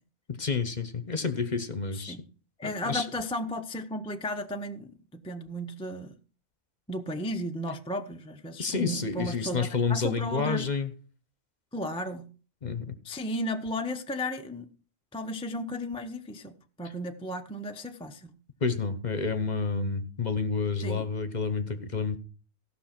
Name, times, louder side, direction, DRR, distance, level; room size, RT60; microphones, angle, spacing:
voice 1, 0.3-2.2 2.6-3.1 8.6-10.9 12.6-12.9 18.6-22.2, left 5 dB, 40° left, 0.9 m, -29 dB
voice 2, 2.6-6.2 6.9-10.7 11.7-12.3 13.0-14.7 15.1-18.4 20.8-21.1, left 1 dB, 5° left, 0.5 m, -34 dB
15.5 x 5.9 x 5.9 m
omnidirectional pair, 1.4 m